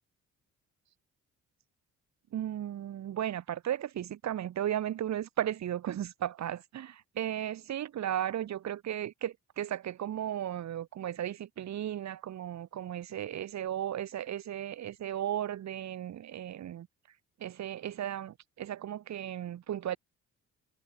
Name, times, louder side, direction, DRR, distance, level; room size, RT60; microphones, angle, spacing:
voice 1, 2.3-16.9 17.4-20.0, right 11 dB, 65° right, 1.8 m, -35 dB
cardioid pair, 90°, 30 cm